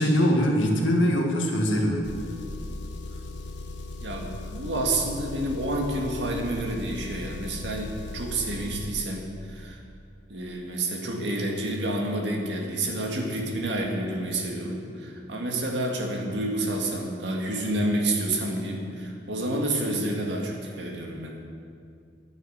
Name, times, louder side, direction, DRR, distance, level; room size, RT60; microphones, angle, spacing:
voice 1, 0.0-2.0, equal, 90° left, 1 dB, 2.0 m, -22 dB
Engine, 2.0-8.9, left 2 dB, 65° left, 1.4 m, -38 dB
voice 2, 4.0-9.8 10.3-21.4, right 1 dB, 65° right, 1 dB, 2.1 m, -29 dB
11.0 x 9.3 x 8.2 m, 2.3 s
head